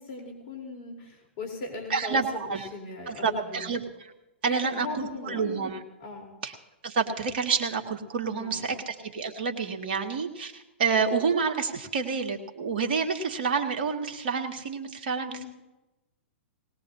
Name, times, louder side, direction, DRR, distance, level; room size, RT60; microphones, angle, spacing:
voice 1, 0.0-3.7 4.5-5.4 6.0-6.3 8.3-8.8 15.3-15.5, left 3 dB, 50° left, 2 dB, 3.9 m, -38 dB
voice 2, 1.9-2.7 3.1-4.1 4.4-5.8 6.4-6.5 6.8-15.4, right 5 dB, 60° right, 3 dB, 2.0 m, -29 dB
20.5 x 18.5 x 2.8 m, 1.0 s
hypercardioid pair, 115°, 6 cm